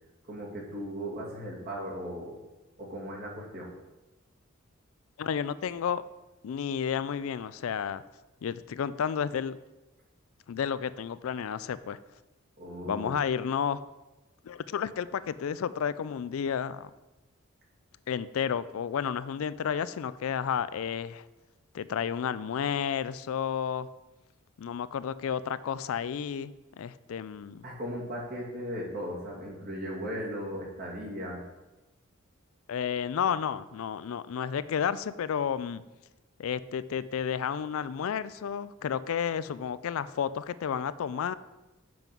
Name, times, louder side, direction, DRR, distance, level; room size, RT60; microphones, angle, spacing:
voice 1, 0.2-2.4 2.8-3.7 12.6-13.1 27.6-31.4, equal, 50° right, -4 dB, 2.5 m, -37 dB
voice 2, 5.2-6.0 6.4-8.0 8.4-9.6 10.5-12.0 12.8-13.8 14.4-16.9 18.1-21.2 21.7-23.9 24.6-27.6 32.7-35.8 36.4-41.3, left 7 dB, 70° left, 15 dB, 0.4 m, -31 dB
7.7 x 5.3 x 6.0 m, 1.1 s
head